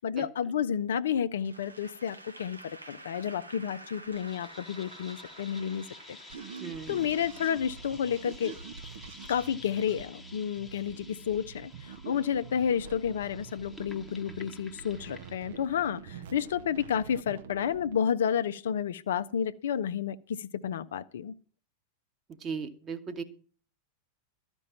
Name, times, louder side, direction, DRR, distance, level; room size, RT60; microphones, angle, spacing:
voice 1, 0.0-6.2 6.9-8.5 9.3-21.3, left 8 dB, 60° left, 0.6 m, -31 dB
Applause / Crowd, 1.4-7.8, right 1 dB, 80° right, 1.2 m, -50 dB
sound 1, 4.1-15.6, left 2 dB, 5° left, 1.1 m, -51 dB
sound 2, 6.3-18.0, right 6 dB, 55° right, 0.8 m, -46 dB
voice 2, 6.6-7.1 22.4-23.2, right 5 dB, 25° right, 1.3 m, -37 dB
13.0 x 5.3 x 8.6 m
figure-of-eight pair, 90°, 0 cm